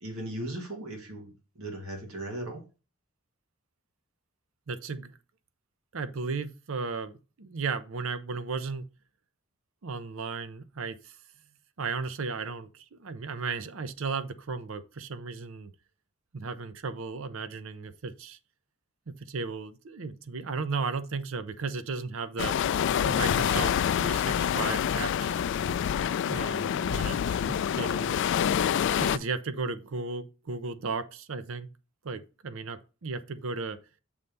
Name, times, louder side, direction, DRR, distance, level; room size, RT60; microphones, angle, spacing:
voice 1, 0.0-2.6, right 1 dB, 85° right, 2.0 m, -37 dB
voice 2, 4.7-5.2 5.9-8.8 9.8-11.2 11.8-15.7 16.3-18.4 19.1-22.6 23.0-25.5 26.3-28.4 29.0-31.7 32.0-33.8, right 4 dB, 65° right, 0.6 m, -35 dB
sound 1, 22.4-29.2, left 8 dB, 60° left, 0.3 m, -27 dB
7.0 x 3.3 x 5.3 m
head